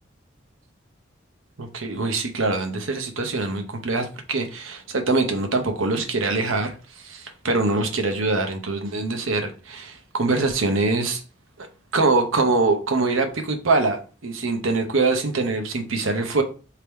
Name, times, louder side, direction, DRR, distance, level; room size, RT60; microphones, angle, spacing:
voice 1, 1.6-11.2 11.6-11.7 11.9-16.4, right 3 dB, 85° right, 0.8 m, -24 dB
3.5 x 2.9 x 4.4 m
head